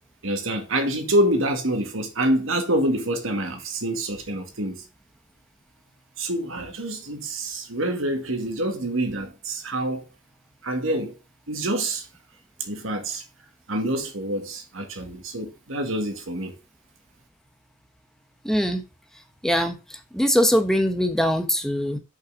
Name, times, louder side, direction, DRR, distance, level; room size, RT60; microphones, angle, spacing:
voice 1, 0.2-4.8 6.2-10.0 10.6-11.2 11.5-12.1 12.6-13.2 13.7-16.5, right 1 dB, 90° right, 2.1 m, -26 dB
voice 2, 18.4-18.8 19.4-22.0, equal, ahead, 1.0 m, -22 dB
6.3 x 5.6 x 6.4 m
head